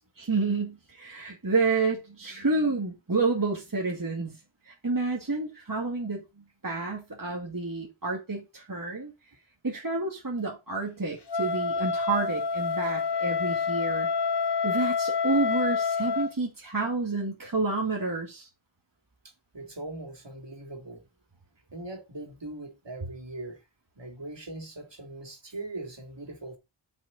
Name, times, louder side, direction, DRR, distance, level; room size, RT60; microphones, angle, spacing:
voice 1, 0.2-4.4 4.7-9.1 9.6-14.1 14.6-18.5, right 3 dB, 45° right, 2.1 m, -29 dB
Wind instrument woodwind instrument, 11.3-16.3, left 5 dB, 55° left, 1.0 m, -28 dB
voice 2, 19.2-21.1 21.7-23.6 23.9-26.6, right 2 dB, 60° right, 3.1 m, -40 dB
8.8 x 6.4 x 4.1 m
wide cardioid pair, 40°, 48 cm